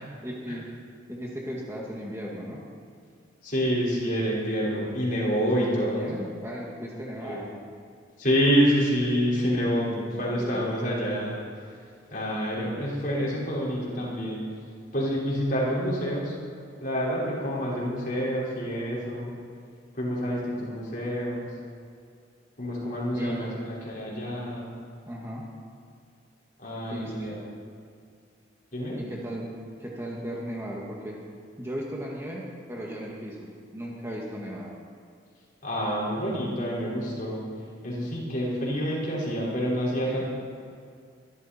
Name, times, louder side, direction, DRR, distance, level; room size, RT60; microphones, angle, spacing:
voice 1, 0.2-0.7 1.1-2.6 5.3-7.5 9.4-10.6 23.1-23.6 25.1-25.5 26.9-27.4 29.0-31.2 31.6-34.7 40.0-40.2, equal, 15° right, -3 dB, 1.9 m, -36 dB
voice 2, 3.4-6.1 7.2-7.4 8.2-11.4 12.1-14.4 14.9-16.3 16.8-19.3 19.9-21.5 22.6-24.7 26.6-27.4 28.7-29.0 35.6-37.5 37.8-40.2, equal, 45° left, -6 dB, 4.9 m, -27 dB
24.0 x 12.5 x 4.4 m, 2.2 s
head